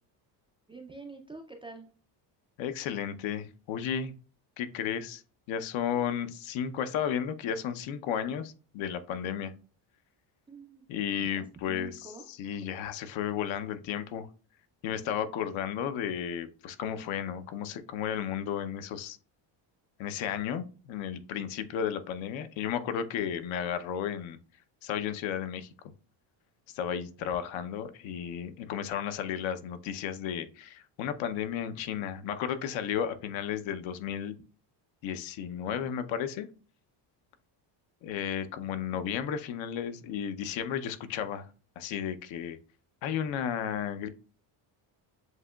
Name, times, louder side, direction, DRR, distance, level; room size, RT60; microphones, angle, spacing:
voice 1, 0.7-1.9 10.5-10.8 11.1-12.3, right 3 dB, 15° right, 2 dB, 0.3 m, -46 dB
voice 2, 2.6-4.1 4.6-5.2 5.5-9.5 10.9-14.3 14.8-19.2 20.0-24.4 24.8-25.7 26.7-34.4 35.0-36.5 38.0-41.5 41.8-42.6 43.0-44.1, left 8 dB, 75° left, 10 dB, 0.7 m, -33 dB
7.6 x 2.8 x 2.3 m, 0.37 s
cardioid pair, 145°, 48 cm